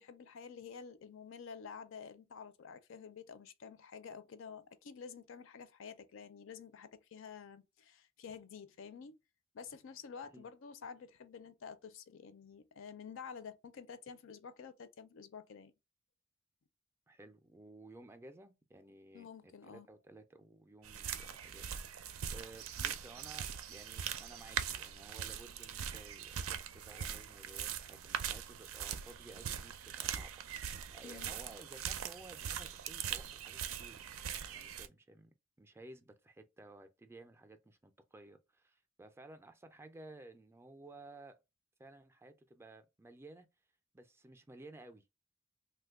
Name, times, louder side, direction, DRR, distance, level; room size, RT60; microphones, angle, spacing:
voice 1, 0.0-9.2 9.5-15.7 19.1-19.9 31.0-31.3, left 6 dB, 65° left, 0.4 m, -50 dB
voice 2, 17.1-19.3 19.6-41.4 41.8-43.5 43.9-45.1, right 2 dB, 10° right, 0.3 m, -56 dB
sound 1, 20.8-34.9, right 8 dB, 90° right, 0.5 m, -41 dB
3.0 x 2.2 x 3.4 m
head